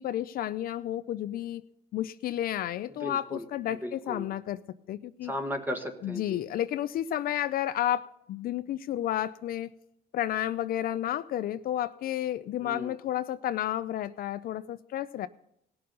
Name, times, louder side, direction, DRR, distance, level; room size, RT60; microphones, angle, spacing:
voice 1, 0.0-1.6 1.9-4.6 4.9-5.3 6.0-9.7 10.1-15.3, left 12 dB, 60° left, 13 dB, 0.5 m, -31 dB
voice 2, 3.0-3.4 3.7-4.3 5.2-6.4 12.6-12.9, equal, 10° right, 5 dB, 1.4 m, -36 dB
18.0 x 6.7 x 5.4 m, 0.76 s
cardioid pair, 110°, 17 cm